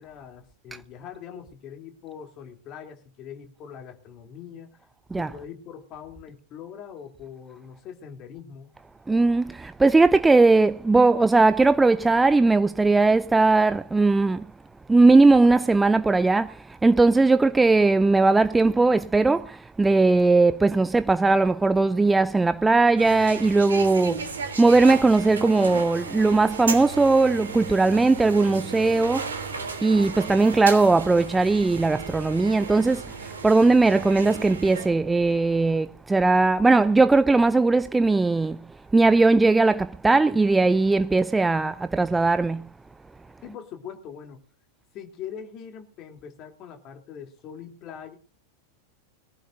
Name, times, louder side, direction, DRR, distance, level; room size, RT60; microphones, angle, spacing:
voice 1, 0.0-4.8 5.2-8.7 43.4-44.4 44.9-48.2, left 8 dB, 35° left, 3.3 m, -42 dB
voice 2, 9.1-14.5 14.9-29.4 29.8-38.7 38.9-42.7, right 3 dB, 10° right, 0.6 m, -19 dB
sound 1, 23.0-34.9, right 5 dB, 70° right, 3.2 m, -35 dB
22.5 x 15.5 x 2.7 m
figure-of-eight pair, 90°, 0 cm